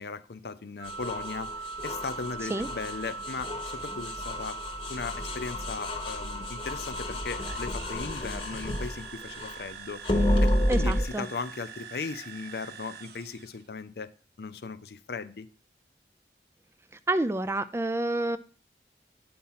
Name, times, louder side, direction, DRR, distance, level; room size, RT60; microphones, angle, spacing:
voice 1, 0.0-4.6 4.9-10.0 10.4-14.1 14.4-15.5, left 4 dB, 65° left, 0.5 m, -37 dB
sound 1, 0.8-9.6 10.0-11.1, left 1 dB, 30° left, 1.0 m, -31 dB
Wind instrument woodwind instrument, 0.8-7.7, right 5 dB, 90° right, 1.1 m, -41 dB
sound 2, 7.3-13.7, right 7 dB, 65° right, 0.7 m, -45 dB
voice 2, 10.7-11.3 17.1-18.4, right 2 dB, 15° right, 0.3 m, -28 dB
8.6 x 4.3 x 5.6 m
head